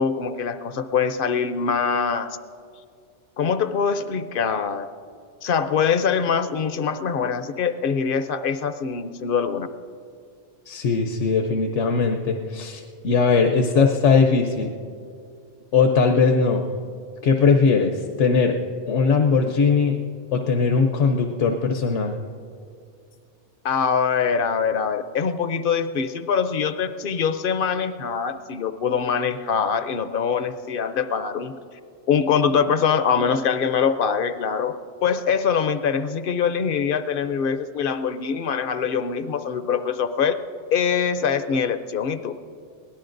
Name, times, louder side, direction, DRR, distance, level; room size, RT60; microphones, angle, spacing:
voice 1, 0.0-2.4 3.4-4.9 5.4-9.7 23.6-31.6 32.1-34.7 35.0-40.4 40.7-42.3, left 6 dB, 55° left, 10 dB, 0.7 m, -23 dB
voice 2, 10.7-14.7 15.7-16.6 17.2-18.6 18.9-20.0 20.3-22.2, left 5 dB, 80° left, 4 dB, 1.1 m, -20 dB
23.0 x 18.0 x 2.6 m, 2.3 s
omnidirectional pair, 1.2 m